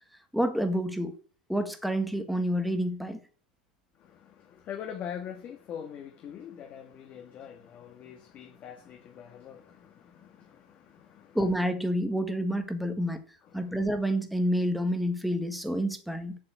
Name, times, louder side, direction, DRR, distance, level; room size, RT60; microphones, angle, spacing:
voice 1, 0.3-1.1 1.5-3.2 11.3-13.2 13.5-16.4, equal, ahead, 1.5 m, -28 dB
voice 2, 4.0-11.4 13.4-13.7, left 8 dB, 30° left, 1.5 m, -43 dB
7.8 x 7.0 x 8.0 m
supercardioid pair, 145°, 5 cm